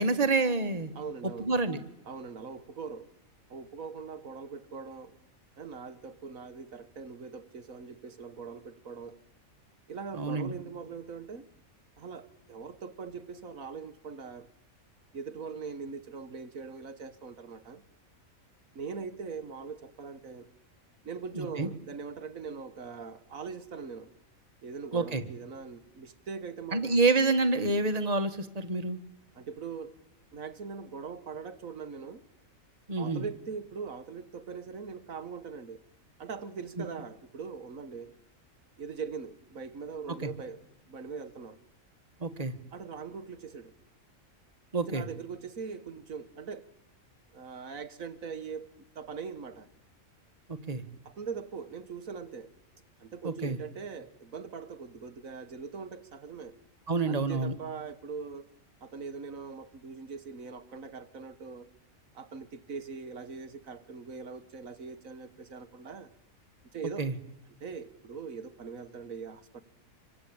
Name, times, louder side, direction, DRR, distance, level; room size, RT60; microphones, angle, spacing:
voice 1, 0.0-0.9 1.4-1.8 10.1-10.5 21.4-21.7 24.9-25.2 26.7-29.0 32.9-33.2 40.2-40.3 42.2-42.5 44.7-45.1 50.5-50.8 53.2-53.6 56.9-57.6 67.0-67.1, right 3 dB, 30° right, 9 dB, 1.8 m, -28 dB
voice 2, 1.0-1.5 2.1-3.1 3.5-5.2 5.6-9.2 9.9-11.5 12.0-14.5 15.1-17.8 18.8-20.5 21.0-24.1 24.6-27.0 29.3-30.0 30.3-32.2 33.0-35.8 36.2-38.1 38.8-40.6 40.9-41.6 42.7-43.7 44.9-46.7 47.3-49.7 51.1-52.5 53.0-56.6 57.1-58.5 58.8-61.7 62.1-66.1 66.7-67.1 67.6-69.6, right 5 dB, 75° right, 10 dB, 1.8 m, -41 dB
26.5 x 24.0 x 8.7 m, 0.82 s
omnidirectional pair, 1.4 m